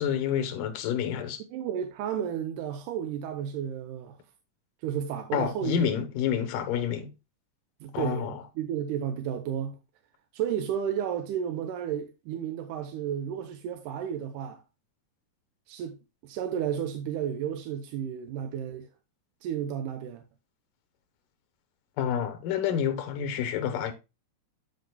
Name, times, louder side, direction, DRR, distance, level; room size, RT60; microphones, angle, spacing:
voice 1, 0.0-1.4 5.3-7.1 7.9-8.4 22.0-23.9, left 9 dB, 85° left, 2.6 m, -28 dB
voice 2, 1.5-4.2 4.8-5.9 7.8-9.8 10.3-14.6 15.7-18.9 19.4-20.2, right 9 dB, 80° right, 2.2 m, -32 dB
13.0 x 5.2 x 2.2 m
omnidirectional pair, 3.7 m